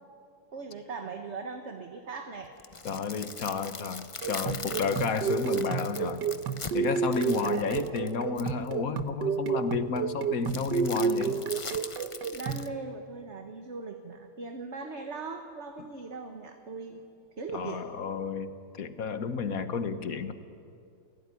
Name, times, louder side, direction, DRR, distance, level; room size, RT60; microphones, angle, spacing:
voice 1, 0.5-2.5 7.3-7.6 12.3-17.0 17.4-17.8, right 4 dB, 40° right, 5 dB, 1.5 m, -39 dB
sound 1, 2.4-8.7 10.4-12.7, left 4 dB, 35° left, 0.5 m, -41 dB
voice 2, 2.8-6.2 6.7-11.4 15.8-15.9 17.5-20.3, left 5 dB, 50° left, 10 dB, 1.5 m, -32 dB
sound 2, 4.2-12.7, right 6 dB, 70° right, 1.6 m, -31 dB
29.0 x 17.0 x 9.9 m, 2.4 s
omnidirectional pair, 2.0 m